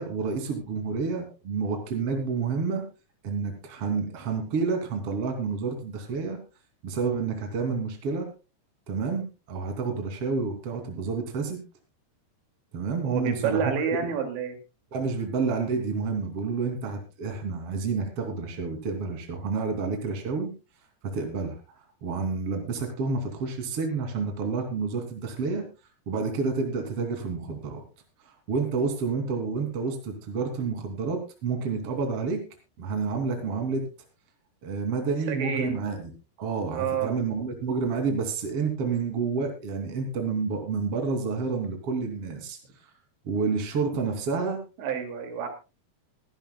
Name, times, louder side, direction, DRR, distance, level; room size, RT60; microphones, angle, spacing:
voice 1, 0.0-2.8 3.2-6.4 6.8-8.3 8.9-11.6 12.7-14.0 14.9-20.5 21.0-21.6 22.0-25.6 26.1-27.8 28.5-32.4 32.8-33.8 34.6-36.1 36.4-42.6 43.2-44.6, right 4 dB, 35° right, 4 dB, 3.2 m, -29 dB
voice 2, 13.0-14.6 35.3-35.8 36.7-37.1 44.8-45.5, right 7 dB, 85° right, 5 dB, 4.8 m, -29 dB
25.0 x 11.5 x 2.3 m, 0.30 s
omnidirectional pair, 5.1 m